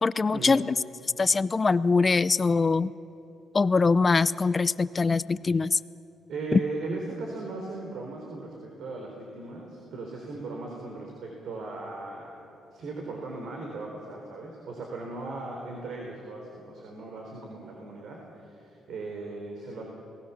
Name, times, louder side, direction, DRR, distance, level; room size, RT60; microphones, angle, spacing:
voice 1, 0.0-0.8 1.2-2.9 3.5-5.8 6.5-6.6, left 4 dB, 30° left, 17 dB, 0.6 m, -23 dB
voice 2, 6.3-12.3 12.7-19.8, right 3 dB, 70° right, 0 dB, 3.8 m, -38 dB
28.0 x 18.5 x 7.1 m, 2.8 s
cardioid pair, 90°, 0 cm